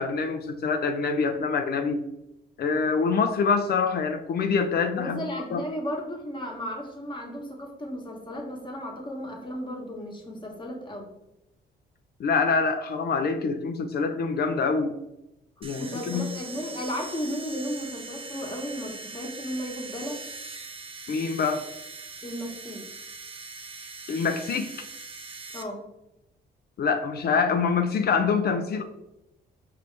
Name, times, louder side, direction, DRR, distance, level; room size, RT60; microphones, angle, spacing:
voice 1, 0.0-2.0 2.6-5.2 5.5-5.6 12.2-15.0 15.6-16.3 21.1-21.6 24.1-24.9 26.8-28.8, left 5 dB, 50° left, 7 dB, 0.5 m, -25 dB
voice 2, 5.0-11.1 15.8-20.2 22.2-22.9 25.5-25.9, equal, 25° left, 1 dB, 1.2 m, -34 dB
sound 1, 15.6-25.6, right 3 dB, 25° right, 0.5 m, -41 dB
5.3 x 2.8 x 3.2 m, 0.89 s
cardioid pair, 90°, 20 cm